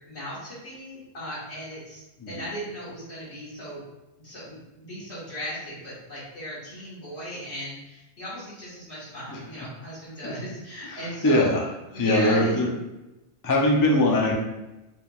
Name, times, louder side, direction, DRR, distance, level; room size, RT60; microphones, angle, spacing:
voice 1, 0.1-3.8 4.2-11.5 11.9-12.6, equal, 70° left, -8 dB, 2.0 m, -37 dB
voice 2, 10.9-11.6 11.9-12.7 13.4-14.4, left 1 dB, 30° left, -2 dB, 0.4 m, -22 dB
4.5 x 3.4 x 2.4 m, 1.0 s
omnidirectional pair, 1.2 m